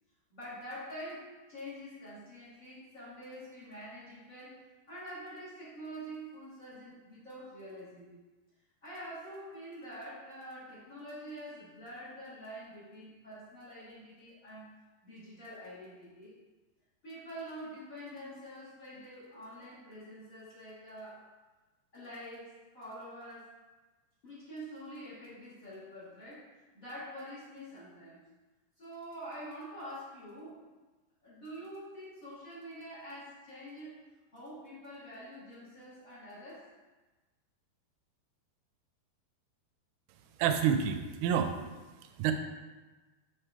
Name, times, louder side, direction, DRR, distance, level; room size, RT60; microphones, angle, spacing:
voice 1, 0.3-4.6 4.9-8.2 8.8-14.7 15.0-16.3 17.0-21.2 21.9-23.6 24.2-28.2 28.8-30.6 31.2-34.0 34.3-36.7, equal, 40° left, -10 dB, 1.1 m, -46 dB
voice 2, 40.4-41.5 42.2-42.3, right 8 dB, 85° right, 7 dB, 2.4 m, -28 dB
7.8 x 3.7 x 3.3 m, 1.2 s
omnidirectional pair, 4.5 m